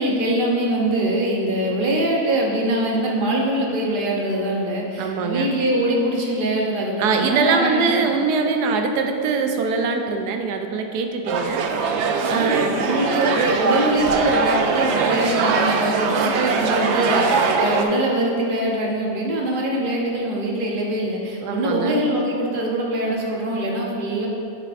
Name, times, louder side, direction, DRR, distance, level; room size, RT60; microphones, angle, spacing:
voice 1, 0.0-7.9 12.3-24.3, right 1 dB, 40° right, -2 dB, 0.9 m, -23 dB
voice 2, 5.0-5.5 7.0-11.6 12.3-12.6 21.4-22.0, right 4 dB, 90° right, 5 dB, 1.2 m, -22 dB
sound 1, 11.3-17.8, right 4 dB, 70° right, 0.6 m, -21 dB
8.2 x 6.7 x 2.5 m, 2.6 s
omnidirectional pair, 1.7 m